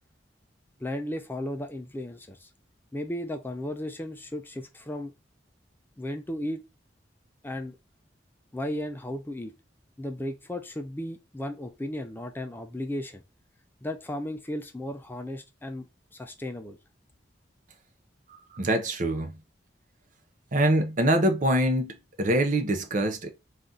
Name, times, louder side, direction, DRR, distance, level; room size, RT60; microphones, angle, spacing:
voice 1, 0.8-2.5 2.9-5.1 6.0-6.6 7.4-7.8 8.5-9.5 10.0-13.2 13.8-15.9 16.1-16.8, left 1 dB, 10° left, 0.4 m, -35 dB
voice 2, 18.5-19.4 20.5-23.3, right 1 dB, 45° right, 0.7 m, -24 dB
4.1 x 2.5 x 3.8 m
head